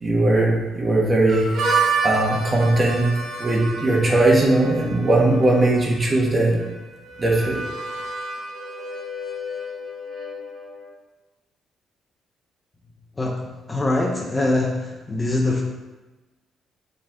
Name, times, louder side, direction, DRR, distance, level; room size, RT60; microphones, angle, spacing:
voice 1, 0.0-1.5 2.0-3.1 3.4-6.6 7.2-7.6, right 2 dB, 30° right, -2 dB, 1.7 m, -19 dB
Harmonica, 1.3-10.9, right 3 dB, 65° right, 1.3 m, -29 dB
voice 2, 13.7-15.6, left 2 dB, 20° left, 0 dB, 0.9 m, -23 dB
7.7 x 4.0 x 3.7 m, 1.2 s
cardioid pair, 90°, 0 cm